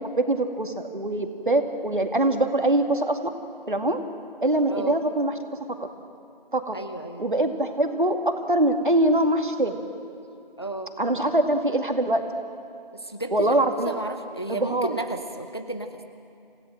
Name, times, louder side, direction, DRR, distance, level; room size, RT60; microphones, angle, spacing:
voice 1, 0.2-3.2 3.7-4.0 4.4-5.4 6.5-6.8 7.2-9.8 11.0-12.2 13.3-13.9 14.5-14.9, right 1 dB, 60° right, 6 dB, 2.3 m, -23 dB
voice 2, 6.7-7.3 10.2-10.3 10.6-10.9 12.9-13.6 13.8-16.0, right 2 dB, 25° left, 8 dB, 0.8 m, -33 dB
28.0 x 17.5 x 7.7 m, 2.6 s
figure-of-eight pair, 170°, 29 cm